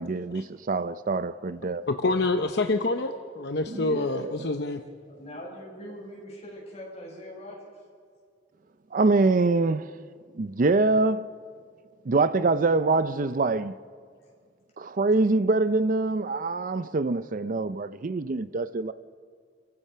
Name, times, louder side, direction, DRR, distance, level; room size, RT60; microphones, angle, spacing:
voice 1, 0.0-2.2 3.7-4.5 8.9-9.9 10.4-11.3 12.1-13.7 14.8-18.9, right 3 dB, 45° right, 0.5 m, -25 dB
voice 2, 1.9-4.8, left 2 dB, 65° left, 0.8 m, -27 dB
voice 3, 5.1-7.8 14.2-14.3, equal, 35° left, 7.7 m, -42 dB
30.0 x 15.5 x 5.7 m
head